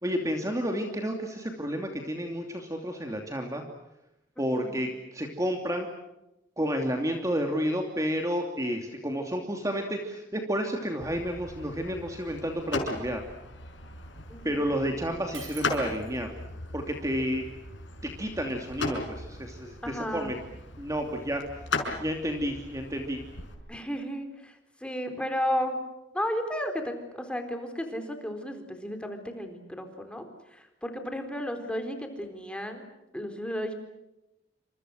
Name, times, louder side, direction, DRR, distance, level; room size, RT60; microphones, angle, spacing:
voice 1, 0.0-3.6 4.4-5.9 6.6-13.2 14.4-16.3 16.7-17.4 18.2-20.3 20.8-21.4 22.0-23.2, equal, 15° right, 3 dB, 2.8 m, -31 dB
voice 2, 4.4-4.8 14.3-14.9 19.8-20.3 23.7-25.8 26.1-32.8 33.1-33.7, equal, 5° left, 5 dB, 4.1 m, -34 dB
sound 1, 11.0-23.5, left 3 dB, 75° left, 5.8 m, -38 dB
Shatter, 15.3-16.4, right 8 dB, 85° right, 6.0 m, -47 dB
29.0 x 27.5 x 6.5 m, 0.92 s
head